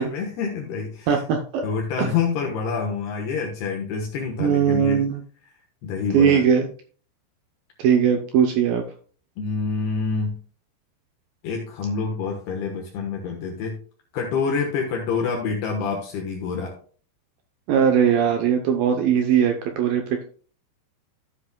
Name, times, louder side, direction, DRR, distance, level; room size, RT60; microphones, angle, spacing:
voice 1, 0.0-1.2 1.6-5.1 5.8-6.4 9.4-10.4 11.4-13.8 14.1-16.7, left 5 dB, 70° left, 1 dB, 2.9 m, -27 dB
voice 2, 1.1-1.6 2.0-2.2 4.4-5.2 6.1-6.7 7.8-8.8 17.7-20.3, right 8 dB, 80° right, 4 dB, 2.0 m, -20 dB
13.5 x 7.8 x 2.2 m, 0.42 s
omnidirectional pair, 5.1 m